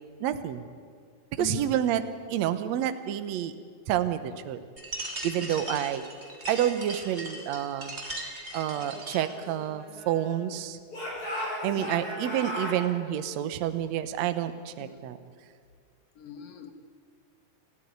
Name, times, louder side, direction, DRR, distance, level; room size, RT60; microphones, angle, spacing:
voice 1, 0.2-0.6 1.3-2.0 2.3-3.5 3.9-4.6 5.2-6.0 6.5-7.9 8.5-10.8 11.6-15.2, right 11 dB, 65° right, 10 dB, 2.0 m, -29 dB
voice 2, 1.4-1.7 5.4-5.7 11.7-12.1 14.8-15.1 16.2-16.7, left 10 dB, 55° left, 7 dB, 2.3 m, -41 dB
sound 1, 4.8-9.3, right 1 dB, 20° right, 2.7 m, -39 dB
Speech / Shout, 8.9-10.5 10.9-12.8, equal, 25° left, 7.9 m, -36 dB
28.5 x 13.5 x 9.5 m, 2.1 s
omnidirectional pair, 3.8 m